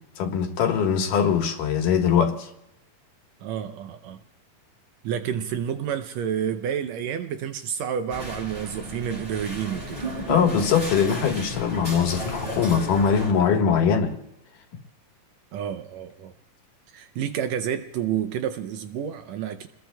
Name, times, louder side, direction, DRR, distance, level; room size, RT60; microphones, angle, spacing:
voice 1, 0.2-2.5 10.3-14.2, left 7 dB, 75° left, 3.0 m, -22 dB
voice 2, 3.4-4.2 5.0-10.0 15.5-16.3 16.9-19.7, right 9 dB, 80° right, 1.5 m, -29 dB
sound 1, 8.1-13.3, equal, 10° right, 6.7 m, -34 dB
29.0 x 21.0 x 2.3 m
omnidirectional pair, 3.9 m